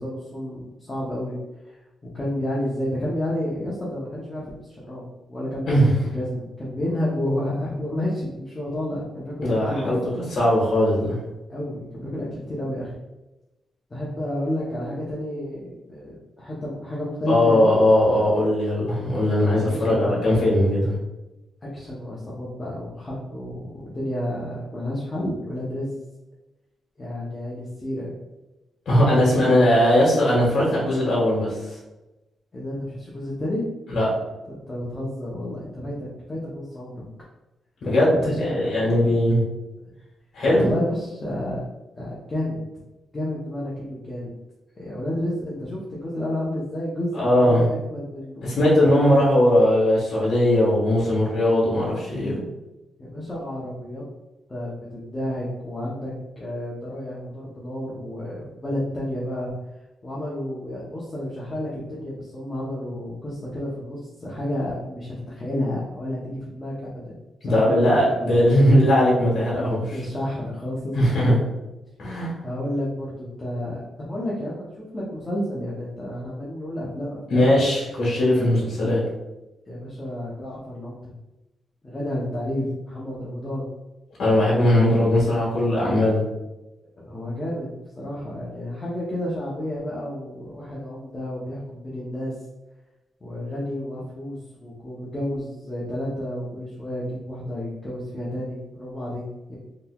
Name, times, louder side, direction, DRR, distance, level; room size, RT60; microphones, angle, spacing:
voice 1, 0.0-1.4 1.6-1.8 2.1-5.0 5.3-10.0 11.5-12.9 13.9-17.8 19.5-20.5 21.7-25.9 27.0-28.1 29.3-29.4 32.5-33.6 34.7-36.9 38.1-38.7 39.1-39.2 40.6-41.6 42.0-42.6 43.1-44.3 44.8-48.5 53.0-54.0 54.5-59.5 60.0-66.9 67.5-68.2 69.9-71.3 72.4-77.5 79.7-81.1 81.8-83.6 87.0-87.7 88.0-92.3 93.2-99.6, left 1 dB, 20° left, -6 dB, 0.6 m, -31 dB
voice 2, 9.4-11.2 17.3-20.9 28.8-31.6 33.9-34.1 37.8-39.4 40.3-40.7 47.1-47.7 48.4-52.4 67.4-70.0 70.9-71.4 72.0-72.3 77.3-79.0 84.2-86.2, left 1 dB, 50° left, -6 dB, 1.2 m, -19 dB
3.8 x 2.8 x 2.2 m, 1.0 s
wide cardioid pair, 165°, 0 cm